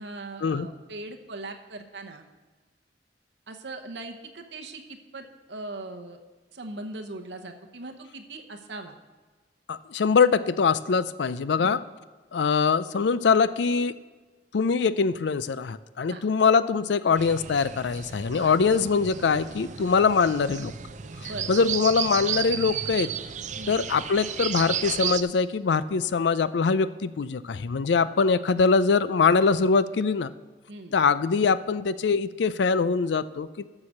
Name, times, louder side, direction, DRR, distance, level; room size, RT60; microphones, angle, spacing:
voice 1, 0.0-2.2 3.5-6.2 6.5-9.0 11.6-11.8 16.1-16.2 18.3-18.6 21.2-21.5 23.5-23.9 30.7-30.9, right 2 dB, 75° right, 4 dB, 0.9 m, -40 dB
voice 2, 9.7-11.8 12.3-13.9 14.5-20.7 21.2-23.1 23.7-30.3 30.9-33.7, left 5 dB, 80° left, 15 dB, 0.4 m, -23 dB
sound 1, 17.2-25.2, right 8 dB, 45° right, 0.5 m, -33 dB
13.0 x 4.9 x 6.4 m, 1.3 s
head